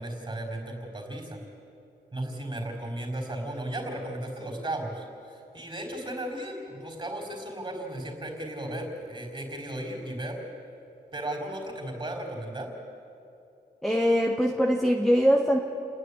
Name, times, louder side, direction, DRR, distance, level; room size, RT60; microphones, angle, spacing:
voice 1, 0.0-1.4 2.1-10.4 11.1-12.7, right 1 dB, 30° right, 1 dB, 3.9 m, -35 dB
voice 2, 13.8-15.6, equal, ahead, -1 dB, 1.1 m, -22 dB
29.5 x 9.9 x 9.8 m, 2.8 s
wide cardioid pair, 140°, 17 cm